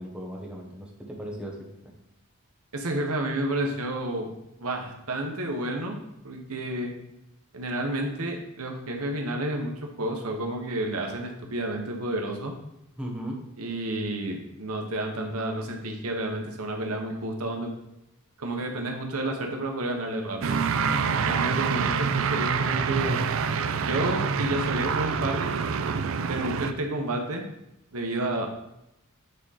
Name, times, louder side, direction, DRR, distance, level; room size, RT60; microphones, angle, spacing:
voice 1, 0.0-1.6 1.8-1.9 13.0-13.4, right 1 dB, 5° right, -2 dB, 1.2 m, -36 dB
voice 2, 2.7-4.3 4.6-6.0 6.2-6.9 7.5-9.7 10.0-12.5 13.6-17.7 18.4-20.6 21.1-23.2 23.8-25.5 26.1-27.4 27.9-28.5, right 1 dB, 90° right, 2 dB, 1.1 m, -30 dB
sound 1, 20.4-26.7, right 5 dB, 65° right, 0.5 m, -26 dB
8.8 x 3.7 x 4.2 m, 0.87 s
head